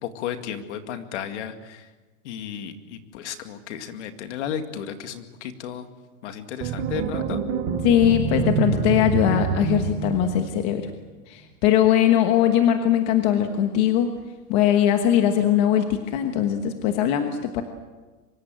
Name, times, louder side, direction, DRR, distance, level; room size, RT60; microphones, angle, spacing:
voice 1, 0.0-1.9 2.2-5.9 6.2-7.4, left 9 dB, 45° left, 7 dB, 2.2 m, -34 dB
sound 1, 6.6-10.9, right 8 dB, 20° right, 1.1 m, -26 dB
voice 2, 7.8-10.9 11.3-14.1 14.5-17.6, left 10 dB, 30° left, 6 dB, 1.3 m, -20 dB
24.5 x 23.0 x 7.8 m, 1.3 s
supercardioid pair, 175°, 46 cm